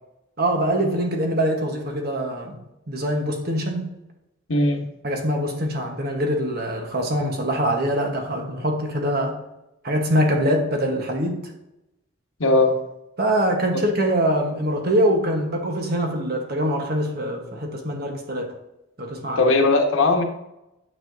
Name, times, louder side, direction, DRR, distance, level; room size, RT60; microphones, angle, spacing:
voice 1, 0.4-2.6 2.9-4.0 5.0-9.4 9.8-11.5 13.2-18.5 19.0-19.4, equal, 50° right, 2 dB, 1.2 m, -23 dB
voice 2, 4.5-4.8 12.4-12.8 13.7-13.8 19.4-20.2, left 2 dB, 90° left, 3 dB, 1.1 m, -18 dB
9.2 x 5.6 x 2.7 m, 0.90 s
head